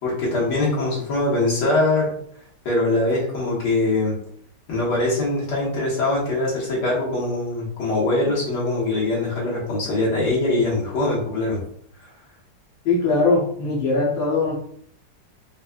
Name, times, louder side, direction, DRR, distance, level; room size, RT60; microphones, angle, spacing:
voice 1, 0.0-2.1 2.7-4.1 4.7-11.6, left 2 dB, 70° left, -6 dB, 2.1 m, -22 dB
voice 2, 12.8-14.5, left 3 dB, 90° left, -5 dB, 1.6 m, -20 dB
5.1 x 2.5 x 2.3 m, 0.63 s
omnidirectional pair, 1.9 m